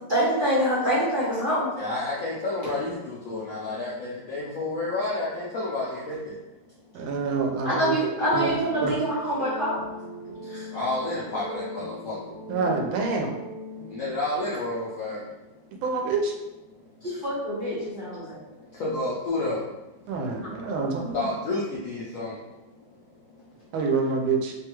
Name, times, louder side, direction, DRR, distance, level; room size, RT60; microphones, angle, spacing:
voice 1, 0.1-1.7 7.6-9.8 17.2-18.4, equal, 50° right, -10 dB, 0.6 m, -25 dB
voice 2, 1.8-6.3 10.5-12.2 13.9-15.2 18.8-19.6 21.1-22.4, left 2 dB, 90° left, -7 dB, 0.7 m, -30 dB
voice 3, 6.9-7.9 8.3-8.5 8.8-8.9 12.5-13.3 15.8-16.3 20.1-21.3 23.7-24.5, right 4 dB, 90° right, 1 dB, 1.4 m, -26 dB
sound 1, 8.6-14.2, left 1 dB, 70° right, 1.7 m, -40 dB
3.4 x 2.3 x 2.9 m, 1.0 s
omnidirectional pair, 2.1 m